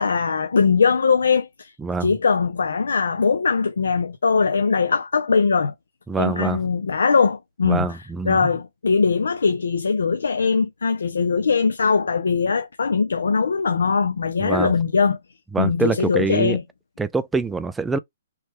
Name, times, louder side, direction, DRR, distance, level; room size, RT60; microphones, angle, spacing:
voice 1, 0.0-1.7 2.0-5.7 6.1-8.0 8.2-15.2 15.6-16.6, left 5 dB, 85° left, 0.5 m, -21 dB
voice 2, 6.1-6.6 7.6-8.4 14.4-14.7 15.5-16.6 17.0-18.0, right 4 dB, 10° right, 0.3 m, -24 dB
3.2 x 3.2 x 3.0 m
hypercardioid pair, 145°, 0 cm